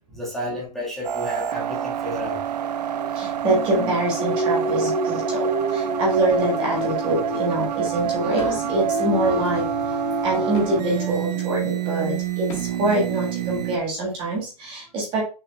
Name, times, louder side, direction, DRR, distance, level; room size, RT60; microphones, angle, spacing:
voice 1, 0.1-2.4, equal, ahead, 1.6 m, -31 dB
sound 1, 1.0-13.8, right 10 dB, 75° right, 0.6 m, -27 dB
voice 2, 2.8-15.2, right 2 dB, 25° right, 1.4 m, -25 dB
Singing, 3.4-7.7 8.0-14.0, left 2 dB, 60° left, 1.5 m, -31 dB
sound 2, 5.9-6.0 6.3-6.5 6.8-7.0 7.6-8.9 9.2-9.5 9.8-10.9 11.6-12.9, left 4 dB, 35° left, 1.5 m, -42 dB
5.9 x 3.9 x 2.3 m
hypercardioid pair, 150°, 21 cm